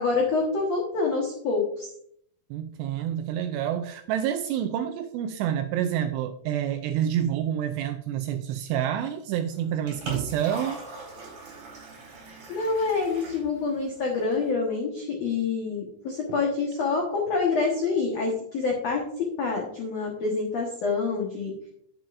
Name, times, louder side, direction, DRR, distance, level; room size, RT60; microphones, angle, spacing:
voice 1, 0.0-1.9 12.5-21.5, left 4 dB, 85° left, -1 dB, 1.5 m, -27 dB
voice 2, 2.5-10.8, right 10 dB, 85° right, 6 dB, 2.4 m, -28 dB
Liquid, 9.5-14.5, right 3 dB, 45° right, 4.5 m, -41 dB
11.0 x 8.4 x 2.6 m, 0.68 s
omnidirectional pair, 5.3 m